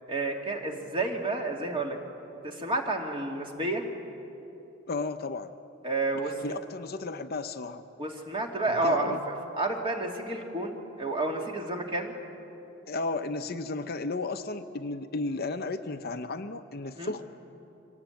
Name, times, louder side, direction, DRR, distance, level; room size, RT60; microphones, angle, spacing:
voice 1, 0.1-2.0 2.4-3.8 5.8-6.6 8.0-12.1 17.0-17.1, right 2 dB, 25° right, 1 dB, 2.5 m, -30 dB
voice 2, 4.9-5.5 6.2-7.8 8.8-9.2 12.9-17.3, left 3 dB, 45° left, 8 dB, 0.7 m, -34 dB
25.5 x 19.0 x 9.2 m, 2.9 s
head